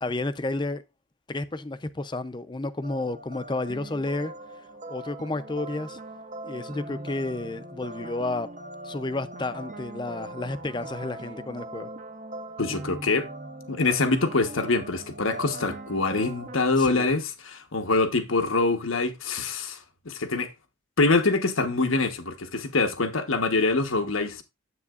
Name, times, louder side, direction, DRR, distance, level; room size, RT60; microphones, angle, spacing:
voice 1, 0.0-0.8 1.3-4.3 4.9-6.0 6.4-8.5 8.8-11.9 16.8-17.1, left 2 dB, 20° left, 0.5 m, -31 dB
sound 1, 2.8-16.7, right 1 dB, 35° right, 0.7 m, -40 dB
voice 2, 12.6-13.3 13.7-19.8 20.0-20.5 21.0-24.4, left 3 dB, 90° left, 1.2 m, -25 dB
9.6 x 7.8 x 2.4 m
head